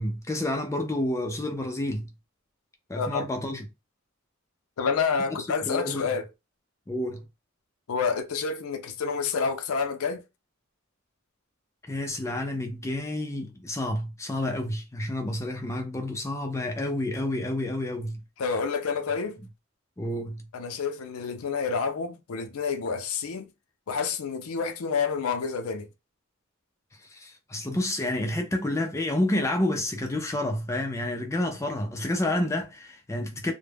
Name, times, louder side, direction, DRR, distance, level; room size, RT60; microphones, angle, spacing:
voice 1, 0.0-2.1 2.9-3.6 5.6-6.1 6.9-7.2 11.9-18.2 20.0-20.5 27.0-33.5, left 1 dB, 15° left, 0.3 m, -29 dB
voice 2, 4.8-6.3 7.9-10.2 18.4-19.4 20.5-23.5 23.9-25.9, left 5 dB, 90° left, 0.5 m, -28 dB
2.1 x 2.1 x 3.3 m
head